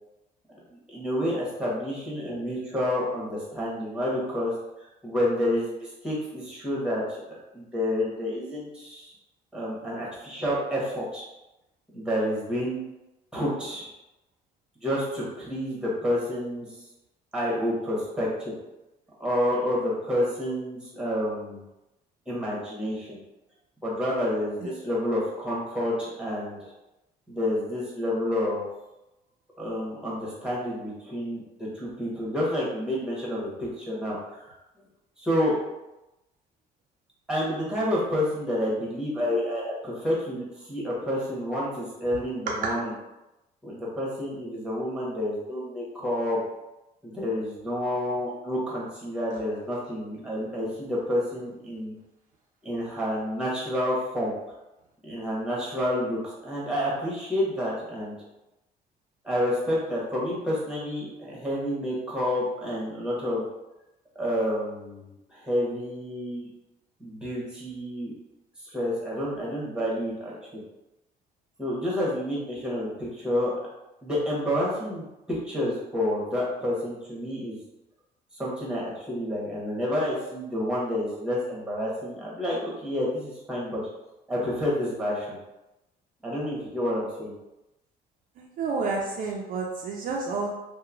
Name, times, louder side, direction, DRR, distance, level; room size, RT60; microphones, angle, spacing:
voice 1, 0.9-4.5 4.8-9.1 9.5-11.2 11.9-12.8 13.3-13.9 14.8-16.7 17.3-18.5 19.2-21.6 22.3-23.2 23.8-26.7 27.3-28.6 29.6-34.6 35.2-35.5 37.3-42.9 43.6-46.4 47.0-51.9 52.6-54.3 55.0-58.1 59.2-63.4 64.1-66.5 67.0-68.1 68.6-70.6 71.6-73.5 74.0-77.6 78.3-83.8 84.3-85.4 86.2-87.3, left 1 dB, 5° right, -6 dB, 1.0 m, -29 dB
voice 2, 88.4-90.6, right 4 dB, 55° right, -1 dB, 0.4 m, -30 dB
2.9 x 2.1 x 2.4 m, 0.96 s
cardioid pair, 110°, 17 cm